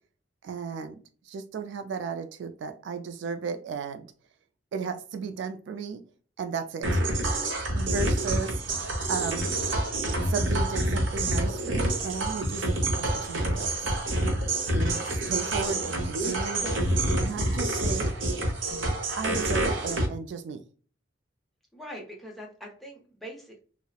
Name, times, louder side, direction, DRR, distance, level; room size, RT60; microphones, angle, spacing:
voice 1, 0.4-4.1 4.7-6.0 6.4-7.0 7.7-8.6 9.0-9.5 10.3-13.9 14.7-16.8 17.2-18.1 18.7-20.6, right 5 dB, 65° right, 8 dB, 0.3 m, -34 dB
sound 1, 6.8-20.1, right 1 dB, 90° right, 0.7 m, -27 dB
voice 2, 21.7-23.6, equal, ahead, -1 dB, 0.6 m, -42 dB
2.8 x 2.0 x 2.3 m, 0.40 s
head